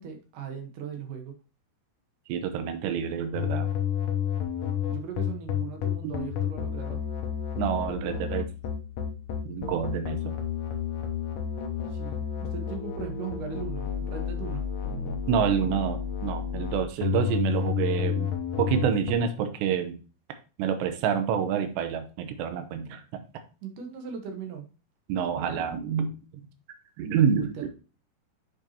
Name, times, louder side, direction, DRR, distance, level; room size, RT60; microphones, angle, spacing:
voice 1, 0.0-1.3 4.9-7.0 11.9-14.6 23.6-24.6 27.4-27.7, right 7 dB, 60° right, 4 dB, 2.5 m, -38 dB
voice 2, 2.3-3.7 7.6-8.5 9.5-10.4 15.3-18.3 18.6-20.0 20.6-23.2 25.1-26.1 27.0-27.7, right 7 dB, 90° right, 7 dB, 3.1 m, -27 dB
sound 1, 3.3-19.1, left 8 dB, 70° left, 2.1 m, -30 dB
8.0 x 7.0 x 2.9 m, 0.34 s
omnidirectional pair, 4.8 m